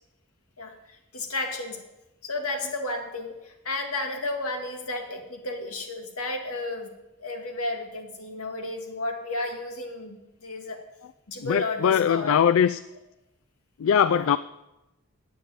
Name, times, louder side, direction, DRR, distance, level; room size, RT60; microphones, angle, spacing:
voice 1, 0.6-1.8 2.2-6.9 7.2-10.8 11.3-12.4 14.1-14.3, left 2 dB, 80° left, 3 dB, 2.2 m, -33 dB
voice 2, 11.4-12.8 13.8-14.4, left 8 dB, 60° left, 15 dB, 0.3 m, -21 dB
9.3 x 8.2 x 9.1 m, 0.95 s
head